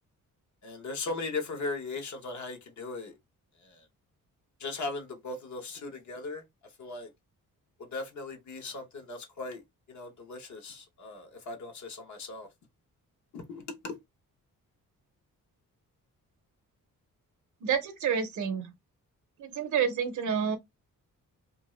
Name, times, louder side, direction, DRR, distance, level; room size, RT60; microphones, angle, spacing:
voice 1, 0.6-3.1 3.6-3.8 4.6-6.4 6.8-7.1 7.8-9.6 9.9-12.5 13.3-14.0, left 3 dB, 60° left, 1.0 m, -38 dB
voice 2, 17.6-18.7 19.4-20.6, right 7 dB, 65° right, 0.6 m, -29 dB
2.6 x 2.4 x 3.0 m
wide cardioid pair, 150°, 32 cm